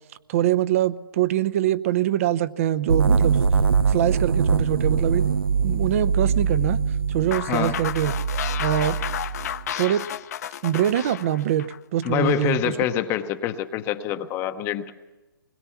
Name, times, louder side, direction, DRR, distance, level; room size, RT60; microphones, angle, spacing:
voice 1, 0.3-3.4 3.9-5.3 5.6-6.8 7.1-8.1 8.6-9.0 9.8-10.1 10.6-12.8, right 12 dB, 40° right, 16 dB, 0.8 m, -23 dB
sound 1, 2.9-9.7, right 5 dB, 85° right, 0.8 m, -23 dB
sound 2, 7.3-12.5, left 10 dB, 45° left, 0.8 m, -32 dB
voice 2, 12.0-14.9, left 11 dB, 20° left, 8 dB, 0.9 m, -25 dB
26.0 x 21.0 x 7.1 m, 1.1 s
hypercardioid pair, 150°, 12 cm